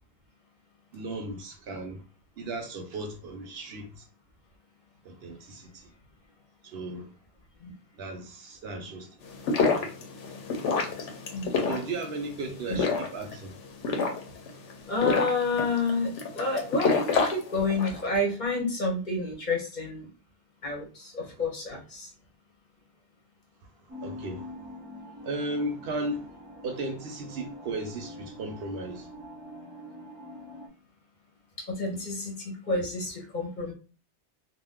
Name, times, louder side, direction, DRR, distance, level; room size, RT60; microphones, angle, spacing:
voice 1, 0.9-2.0 2.4-4.1 5.0-5.9 6.6-7.1 7.9-9.1 9.7-10.0 11.6-13.5 21.2-21.4 24.0-24.5 25.2-26.3 26.6-29.1, right 2 dB, 65° right, 0.8 m, -36 dB
sound 1, 9.2-18.1, left 4 dB, 85° left, 1.0 m, -29 dB
voice 2, 11.3-11.7 12.7-12.8 14.9-20.1 20.6-22.1 31.6-33.7, left 3 dB, 45° left, 0.8 m, -29 dB
sound 2, 23.9-30.7, left 1 dB, 25° right, 0.4 m, -45 dB
2.5 x 2.2 x 3.5 m
omnidirectional pair, 1.2 m